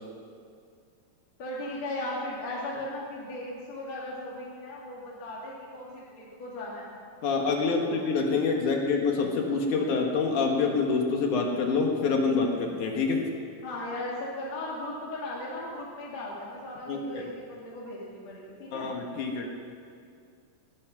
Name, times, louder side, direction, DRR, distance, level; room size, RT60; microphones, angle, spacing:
voice 1, 1.4-6.9 7.6-8.0 13.6-18.9, left 1 dB, 55° left, -5 dB, 3.5 m, -37 dB
voice 2, 7.2-13.2 16.9-17.2 18.7-19.5, left 4 dB, 70° left, 1 dB, 3.0 m, -26 dB
20.5 x 11.5 x 6.1 m, 2.3 s
omnidirectional pair, 3.7 m